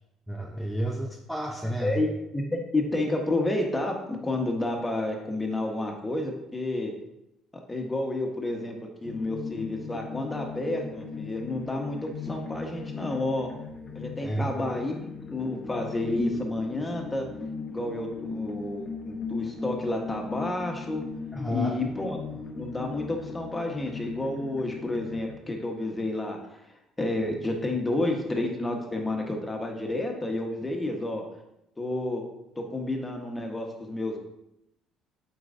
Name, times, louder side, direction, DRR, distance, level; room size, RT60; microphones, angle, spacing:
voice 1, 0.3-2.0 14.2-14.5 21.3-21.8, equal, ahead, 0 dB, 0.7 m, -31 dB
voice 2, 1.6-6.9 7.7-13.5 13.9-17.3 17.7-21.0 21.5-26.4 27.0-31.2 31.8-32.2 32.6-34.2, left 2 dB, 15° left, 2 dB, 1.4 m, -30 dB
sound 1, 9.0-25.3, left 5 dB, 40° left, 0.9 m, -38 dB
8.0 x 4.6 x 2.7 m, 0.85 s
supercardioid pair, 85°, 0 cm